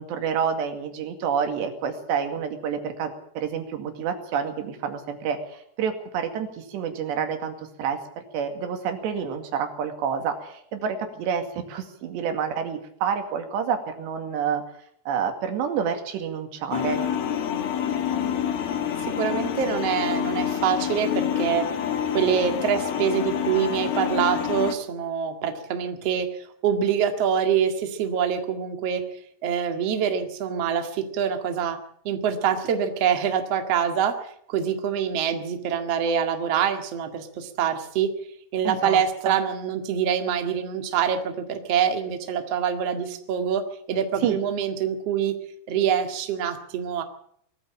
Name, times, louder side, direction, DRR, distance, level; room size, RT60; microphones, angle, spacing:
voice 1, 0.0-14.6 15.1-17.0 38.7-39.3 44.2-44.4, right 7 dB, 90° right, 6 dB, 4.5 m, -28 dB
sound 1, 16.7-24.7, left 9 dB, 65° left, 3.3 m, -27 dB
voice 2, 19.0-21.6 22.1-29.0 29.4-31.8 32.0-38.1 38.5-43.6 43.9-45.3 45.7-47.0, right 8 dB, 45° right, 6 dB, 2.5 m, -25 dB
21.0 x 14.0 x 8.7 m, 0.67 s
omnidirectional pair, 4.9 m